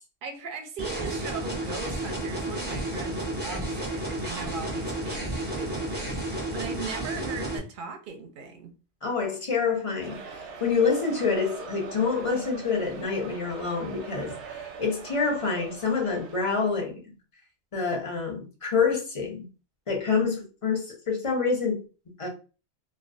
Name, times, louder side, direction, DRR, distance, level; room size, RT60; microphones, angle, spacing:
voice 1, 0.2-8.7, right 5 dB, 60° right, 0.6 m, -38 dB
sound 1, 0.8-7.6, right 1 dB, 10° right, 0.6 m, -32 dB
voice 2, 9.0-17.0 17.7-19.5 19.9-21.8 22.2-22.3, left 5 dB, 35° left, 0.6 m, -27 dB
sound 2, 10.0-16.8, right 5 dB, 85° right, 0.9 m, -42 dB
2.3 x 2.2 x 2.5 m
omnidirectional pair, 1.1 m